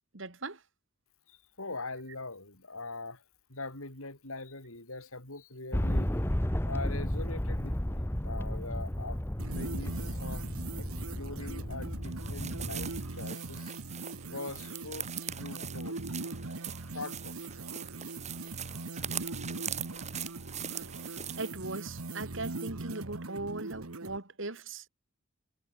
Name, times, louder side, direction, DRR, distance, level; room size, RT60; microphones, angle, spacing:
voice 1, 0.1-0.6 21.4-24.9, right 2 dB, 60° right, 2.5 m, -39 dB
voice 2, 1.3-3.2 3.5-6.1 6.6-9.2 9.5-10.5 10.8-10.9 11.2-13.7 14.3-15.1 15.4-16.3 16.9-17.4, left 3 dB, 80° left, 5.4 m, -42 dB
sound 1, 5.7-13.1, equal, 10° left, 0.9 m, -33 dB
sound 2, 9.4-24.2, right 2 dB, 85° right, 1.5 m, -41 dB
sound 3, 12.0-21.5, right 9 dB, 30° right, 7.4 m, -42 dB
head